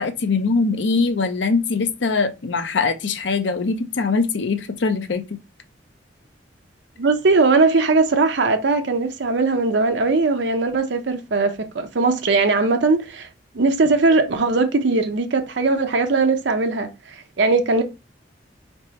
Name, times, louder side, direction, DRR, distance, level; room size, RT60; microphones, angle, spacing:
voice 1, 0.0-5.3, left 4 dB, 75° left, 0.6 m, -22 dB
voice 2, 7.0-13.3 13.5-16.9 17.4-17.8, right 3 dB, 70° right, 0.6 m, -19 dB
4.1 x 3.3 x 2.8 m
head